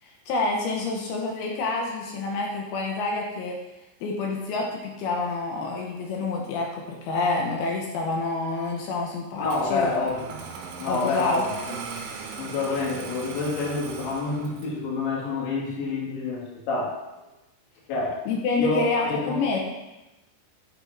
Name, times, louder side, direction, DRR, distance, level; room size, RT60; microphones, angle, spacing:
voice 1, 0.0-3.6 4.0-9.9 10.9-11.4 18.3-19.6, left 3 dB, 80° left, 0 dB, 2.3 m, -28 dB
voice 2, 9.4-10.3 10.8-11.8 12.4-17.0 17.9-18.2 18.6-19.4, left 3 dB, 65° left, -5 dB, 3.6 m, -28 dB
Engine starting, 9.4-14.8, right 5 dB, 75° right, 3.0 m, -38 dB
9.4 x 8.1 x 2.6 m, 1.0 s
omnidirectional pair, 5.5 m